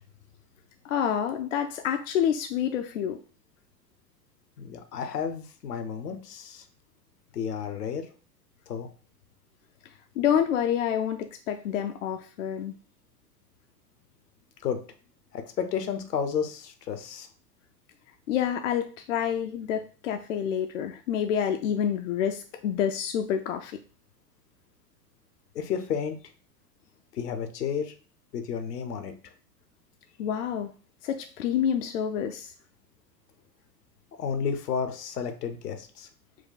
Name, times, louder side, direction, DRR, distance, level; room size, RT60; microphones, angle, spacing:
voice 1, 0.8-3.2 10.2-12.7 18.3-23.8 30.2-30.7 31.0-32.5, left 9 dB, 55° left, 6 dB, 0.5 m, -28 dB
voice 2, 4.6-6.6 7.3-8.0 8.7-8.9 14.6-14.8 15.3-17.3 25.5-26.2 27.1-27.9 28.3-29.1 34.2-36.1, left 7 dB, 70° left, 8 dB, 0.8 m, -31 dB
4.6 x 2.2 x 3.8 m, 0.38 s
figure-of-eight pair, 90°, 49 cm